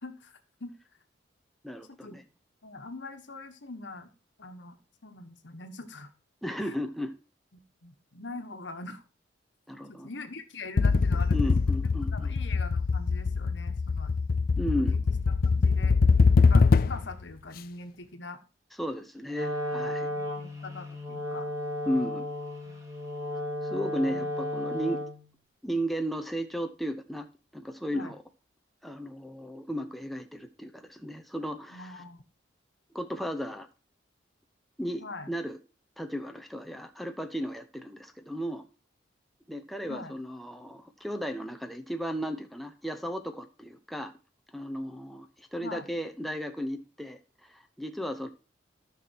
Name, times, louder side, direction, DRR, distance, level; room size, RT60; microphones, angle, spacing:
voice 1, 0.0-0.3 0.6-0.7 1.9-2.2 2.6-4.1 4.4-4.8 5.0-6.1 6.6-6.7 7.8-9.0 9.9-14.1 14.7-15.0 15.4-16.0 16.5-18.4 20.1-21.5 22.6-22.7 27.9-28.1 31.7-32.2 35.0-35.3 39.9-40.1 45.6-45.9, left 3 dB, 75° left, 1.3 m, -43 dB
voice 2, 1.6-2.2 6.4-7.1 9.7-10.1 11.3-12.3 14.6-15.0 18.8-20.1 21.9-22.2 23.6-25.0 25.6-27.3 27.5-28.2 28.8-32.0 32.9-33.7 34.8-35.6 36.0-38.6 39.5-44.1 44.5-48.3, equal, ahead, 0.8 m, -34 dB
sound 1, 10.8-17.1, left 4 dB, 50° left, 0.4 m, -23 dB
Wind instrument woodwind instrument, 19.3-25.3, left 1 dB, 15° right, 2.3 m, -34 dB
13.5 x 6.0 x 4.5 m
head